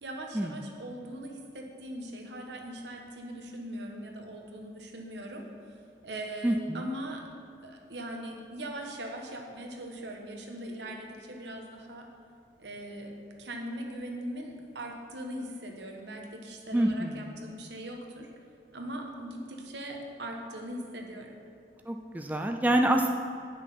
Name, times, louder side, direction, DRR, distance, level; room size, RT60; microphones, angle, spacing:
voice 1, 0.0-5.5 6.0-7.2 7.6-12.1 12.6-18.3 18.7-21.4, right 1 dB, 80° right, 1 dB, 1.3 m, -40 dB
voice 2, 6.4-6.9 16.7-17.4 21.9-23.1, right 1 dB, 10° right, 4 dB, 0.3 m, -27 dB
9.6 x 6.2 x 5.6 m, 2.4 s
head